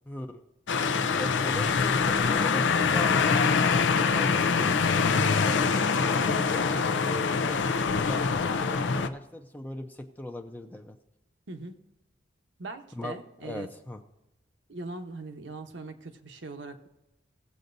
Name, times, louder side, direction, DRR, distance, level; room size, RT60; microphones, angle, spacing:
voice 1, 0.1-0.5 1.2-3.6 4.0-7.6 7.9-11.0 12.9-14.0, left 1 dB, 10° left, 4 dB, 0.6 m, -39 dB
sound 1, 0.7-9.1, left 5 dB, 80° left, 0.6 m, -24 dB
voice 2, 11.5-11.8 12.6-13.7 14.7-16.9, right 3 dB, 75° right, 6 dB, 1.0 m, -41 dB
18.5 x 7.7 x 2.6 m, 0.95 s
head